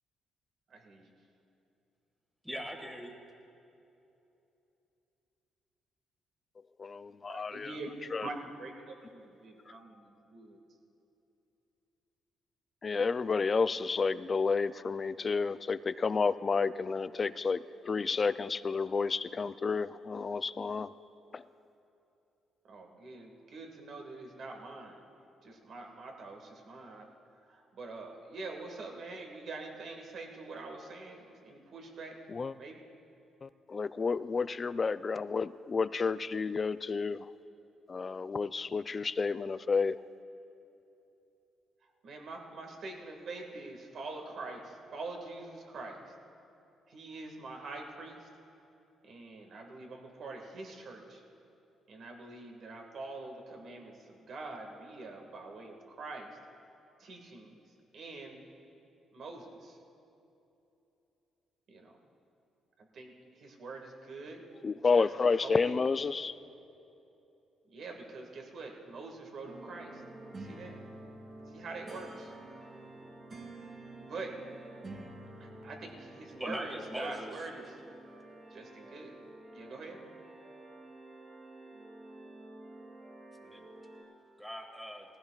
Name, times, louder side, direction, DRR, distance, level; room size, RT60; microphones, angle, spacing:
voice 1, 0.7-1.1 7.3-7.9 8.2-10.6 22.6-25.0 25.4-27.1 27.5-32.2 32.5-32.8 42.0-46.0 46.9-48.3 49.0-51.2 51.9-56.3 57.0-57.6 57.9-58.4 59.1-59.8 61.7-61.9 62.9-64.4 64.9-65.1 65.4-65.7 67.7-70.0 70.3-70.8 71.5-72.3 74.1-74.3 75.4-77.7 78.5-79.1 79.5-80.0, right 3 dB, 60° right, 2 dB, 1.7 m, -44 dB
voice 2, 2.4-3.1 76.3-77.3 83.4-83.7 84.4-85.1, equal, 5° right, 3 dB, 1.8 m, -41 dB
voice 3, 6.8-7.8 8.1-8.3 12.8-20.9 21.3-21.5 32.3-32.5 33.4-37.3 37.9-40.0 64.6-66.4, left 4 dB, 35° left, 15 dB, 0.3 m, -31 dB
sound 1, 69.4-84.0, right 2 dB, 40° right, 2.8 m, -49 dB
19.0 x 15.5 x 2.3 m, 2.9 s
cardioid pair, 90°, 0 cm